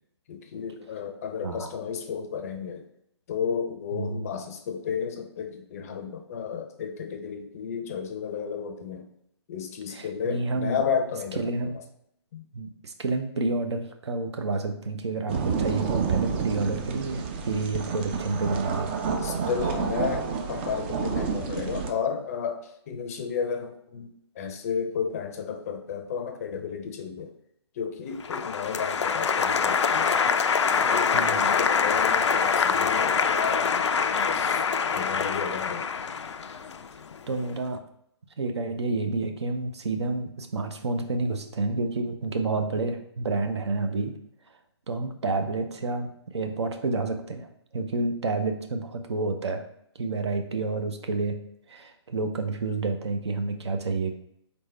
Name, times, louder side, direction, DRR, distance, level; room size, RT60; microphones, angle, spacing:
voice 1, 0.3-2.8 3.3-9.1 9.5-11.7 12.3-12.4 19.2-24.1 24.4-27.3 27.8-30.2 30.7-33.9 34.3-34.6 34.9-35.9, left 6 dB, 35° left, 6 dB, 0.5 m, -32 dB
voice 2, 9.9-10.8 11.4-11.8 12.5-18.9 31.1-31.4 37.3-37.8 38.4-44.1 44.9-49.6 49.9-51.4 51.7-54.1, right 3 dB, 70° right, 6 dB, 0.7 m, -29 dB
sound 1, 15.3-21.9, right 5 dB, 25° right, 0.4 m, -29 dB
Applause, 28.2-37.3, left 6 dB, 85° left, 0.4 m, -25 dB
4.1 x 3.5 x 3.2 m, 0.75 s
hypercardioid pair, 150°, 15 cm